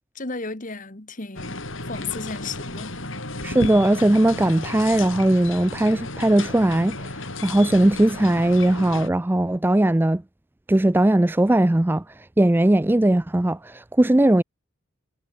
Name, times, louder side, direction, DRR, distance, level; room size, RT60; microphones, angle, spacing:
voice 1, 0.1-3.0, left 4 dB, 35° left, 1.6 m, -34 dB
sound 1, 1.4-9.1, left 2 dB, 60° left, 6.1 m, -33 dB
voice 2, 3.4-7.0 7.4-10.2 10.7-12.0 12.4-14.4, right 1 dB, 10° right, 0.3 m, -19 dB
head